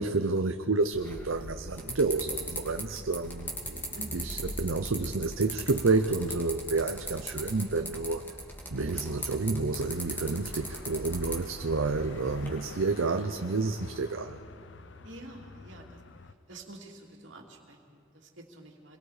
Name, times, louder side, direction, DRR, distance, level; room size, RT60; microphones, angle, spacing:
voice 1, 0.0-8.3 8.7-14.4, right 3 dB, 80° right, 6 dB, 0.7 m, -30 dB
sound 1, 0.9-12.5, equal, 10° left, 2.6 m, -39 dB
voice 2, 3.9-4.3 15.0-16.0 16.5-19.0, right 2 dB, 65° right, 1 dB, 2.7 m, -48 dB
sound 2, 9.7-16.3, left 3 dB, 60° left, 0.7 m, -47 dB
27.0 x 22.0 x 5.0 m, 2.4 s
head